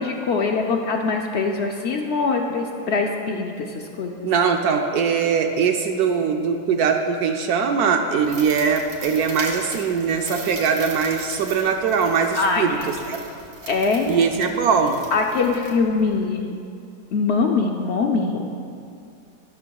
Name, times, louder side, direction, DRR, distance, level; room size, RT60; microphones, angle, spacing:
voice 1, 0.0-4.3 12.3-12.9 13.7-14.1 15.1-16.6 17.1-18.5, left 4 dB, 80° left, 2 dB, 0.6 m, -23 dB
voice 2, 4.2-12.8 13.1-13.2 14.1-15.0, right 6 dB, 70° right, 4 dB, 1.1 m, -21 dB
sound 1, 8.2-16.2, right 3 dB, 55° right, 1.7 m, -39 dB
13.0 x 12.0 x 2.3 m, 2.5 s
omnidirectional pair, 1.9 m